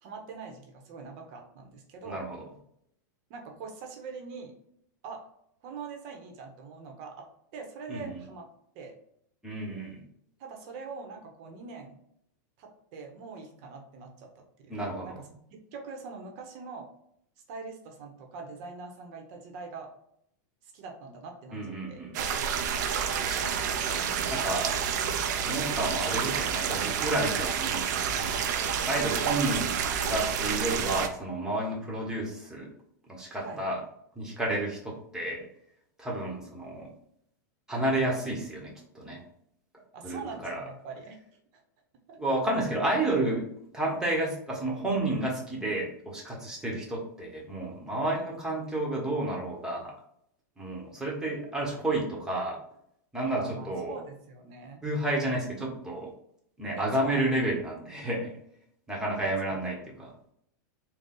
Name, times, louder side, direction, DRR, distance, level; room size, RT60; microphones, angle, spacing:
voice 1, 0.0-2.2 3.3-4.5 5.0-5.2 5.6-7.3 7.5-8.4 8.7-8.9 10.4-12.0 12.6-16.9 17.5-19.9 20.6-22.0 33.4-33.6 39.9-41.2 41.5-41.6 42.1-42.2 53.3-54.8 56.7-57.3, right 4 dB, 50° right, 3 dB, 1.0 m, -43 dB
voice 2, 2.0-2.4 7.9-8.2 9.4-10.0 14.7-15.2 21.5-22.2 23.2-23.6 24.3-24.7 25.1-29.7 30.1-32.7 33.1-33.8 34.1-35.5 36.0-36.9 37.7-39.2 40.0-40.6 42.2-43.5 43.7-49.9 50.6-52.6 53.1-54.0 54.8-56.1 56.6-58.3 58.9-60.1, right 1 dB, 5° right, -3 dB, 1.3 m, -31 dB
sound 1, 22.1-31.1, right 7 dB, 65° right, 0.6 m, -29 dB
4.0 x 2.3 x 3.8 m, 0.72 s
supercardioid pair, 140°, 10 cm